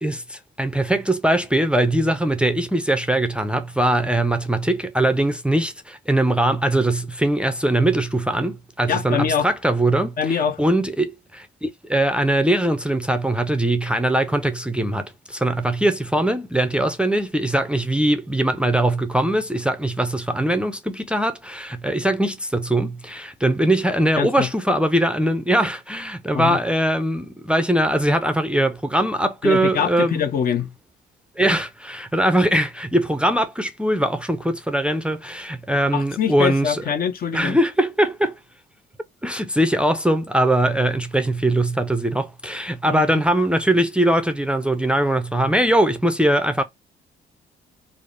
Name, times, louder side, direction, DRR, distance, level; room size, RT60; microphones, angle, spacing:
voice 1, 0.0-30.2 31.4-36.8 37.3-38.4 39.2-46.6, right 1 dB, 5° right, 0.4 m, -21 dB
voice 2, 8.9-9.5 10.2-10.6 24.2-24.5 26.3-26.6 29.4-30.7 35.9-37.6 42.9-43.0, left 7 dB, 50° left, 0.5 m, -23 dB
3.3 x 2.0 x 2.4 m
cardioid pair, 90°, 20 cm